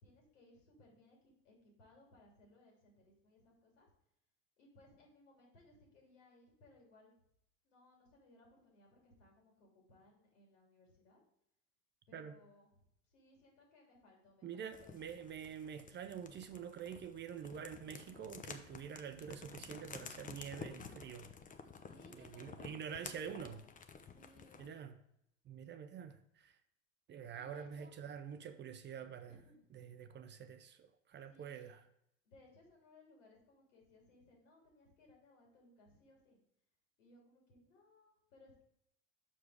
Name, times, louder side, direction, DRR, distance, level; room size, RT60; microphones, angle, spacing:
voice 1, 0.0-3.9 4.6-7.1 7.6-11.2 12.1-12.7 13.1-15.2 21.7-23.6 24.1-24.6 27.3-27.9 29.3-29.6 31.1-31.7 32.2-36.4 37.0-38.6, left 2 dB, 80° left, 2.9 m, -65 dB
voice 2, 14.4-21.3 22.1-23.6 24.6-25.0 25.5-26.6 27.1-29.4 29.7-31.8, right 8 dB, 30° right, 0.5 m, -47 dB
sound 1, 14.7-24.8, left 5 dB, 20° left, 0.7 m, -52 dB
6.2 x 4.9 x 4.7 m
hypercardioid pair, 85°, 37 cm